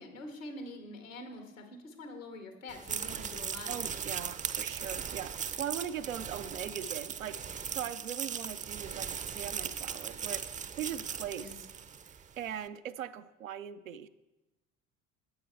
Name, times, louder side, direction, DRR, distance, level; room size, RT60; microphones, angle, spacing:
voice 1, 0.0-3.7 11.4-11.6, left 2 dB, 85° left, 5 dB, 1.5 m, -45 dB
sound 1, 2.7-12.2, right 7 dB, 20° right, 0.5 m, -38 dB
voice 2, 3.7-11.5 12.4-14.1, right 9 dB, 85° right, 12 dB, 0.5 m, -40 dB
10.5 x 7.8 x 4.5 m, 1.0 s
figure-of-eight pair, 60°, 39 cm